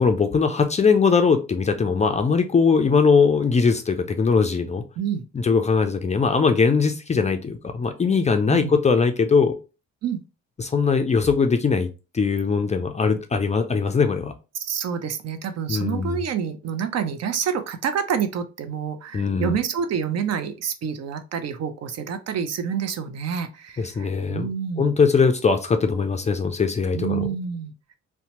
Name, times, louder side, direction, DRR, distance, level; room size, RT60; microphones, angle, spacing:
voice 1, 0.0-4.8 5.3-9.6 10.6-11.9 12.1-14.3 15.7-16.2 19.1-19.5 23.8-24.5 24.8-27.3, left 5 dB, 25° left, 7 dB, 0.3 m, -20 dB
voice 2, 14.5-24.9 26.9-27.7, right 7 dB, 60° right, 9 dB, 0.5 m, -28 dB
2.7 x 2.1 x 2.9 m, 0.30 s
cardioid pair, 90°, 30 cm